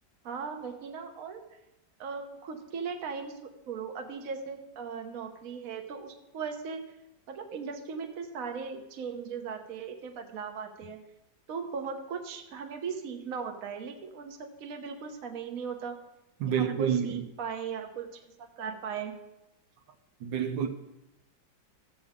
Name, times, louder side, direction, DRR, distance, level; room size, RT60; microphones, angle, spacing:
voice 1, 0.2-1.4 2.0-6.8 7.3-11.0 11.5-16.0 16.5-19.1, right 6 dB, 55° right, 1.3 m, -38 dB
voice 2, 16.4-17.3 20.2-20.7, right 8 dB, 80° right, 1.4 m, -28 dB
14.5 x 7.8 x 3.6 m
omnidirectional pair, 2.0 m